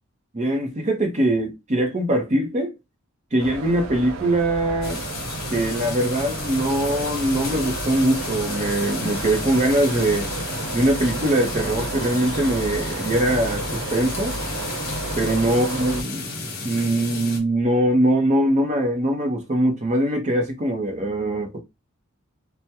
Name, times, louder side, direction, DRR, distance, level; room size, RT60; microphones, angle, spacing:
voice 1, 0.3-2.7 3.3-5.0 5.5-10.3 10.7-14.3 15.2-16.2 16.6-21.6, right 1 dB, 35° right, 0.7 m, -22 dB
sound 1, 3.4-16.0, right 3 dB, 85° right, 0.5 m, -32 dB
sound 2, 4.8-17.4, left 3 dB, 50° left, 1.0 m, -32 dB
3.3 x 2.1 x 2.8 m
head